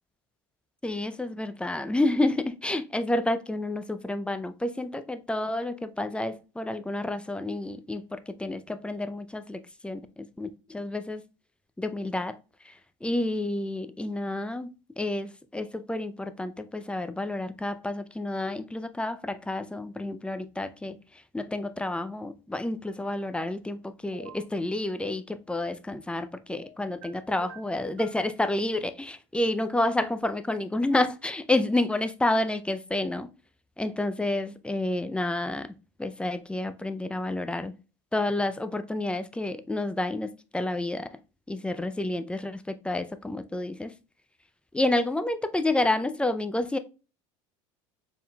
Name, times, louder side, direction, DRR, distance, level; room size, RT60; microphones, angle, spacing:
voice 1, 0.8-11.2 11.8-12.4 12.6-12.7 13.0-21.0 21.3-33.3 33.8-35.7 36.0-37.7 38.1-41.1 41.5-43.9 44.7-46.8, left 2 dB, 5° left, 0.4 m, -29 dB
sound 1, 24.1-24.5 26.5-27.1 27.4-28.2, right 4 dB, 80° right, 1.1 m, -46 dB
4.3 x 3.7 x 2.2 m
hypercardioid pair, 90°, 16 cm